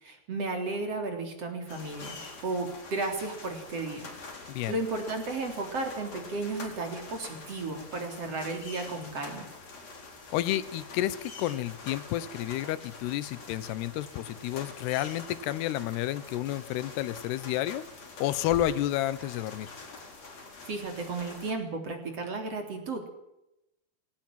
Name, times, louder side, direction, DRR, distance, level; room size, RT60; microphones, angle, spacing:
voice 1, 0.0-4.1 4.4-9.5 20.7-23.1, right 3 dB, 40° right, 4 dB, 4.3 m, -34 dB
sound 1, 1.7-21.5, left 3 dB, 40° left, 5.6 m, -45 dB
voice 2, 10.3-17.8 18.2-19.7, left 13 dB, 90° left, 17 dB, 3.0 m, -30 dB
21.5 x 18.0 x 7.6 m, 0.88 s
omnidirectional pair, 4.6 m